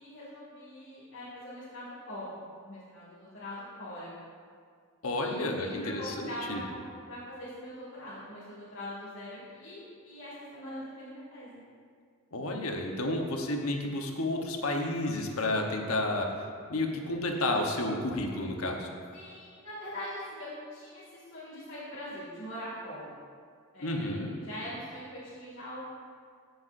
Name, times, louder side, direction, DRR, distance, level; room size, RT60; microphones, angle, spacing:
voice 1, 0.0-4.1 5.1-11.6 19.1-23.1 23.7-25.9, left 1 dB, 60° left, -10 dB, 2.3 m, -42 dB
voice 2, 5.0-6.6 12.3-16.3 16.7-18.9 23.8-24.3, left 1 dB, 85° left, 2 dB, 1.1 m, -31 dB
15.0 x 7.0 x 2.6 m, 2.1 s
head